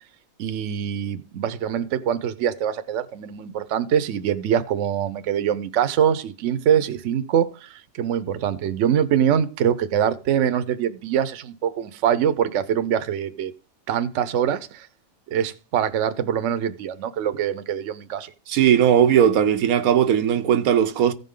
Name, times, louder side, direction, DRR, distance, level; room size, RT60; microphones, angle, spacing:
voice 1, 0.4-13.5 13.9-14.9 15.3-18.3, right 9 dB, 65° right, 1.0 m, -24 dB
voice 2, 18.5-21.1, right 9 dB, 90° right, 1.2 m, -18 dB
15.0 x 5.3 x 3.7 m
omnidirectional pair, 1.4 m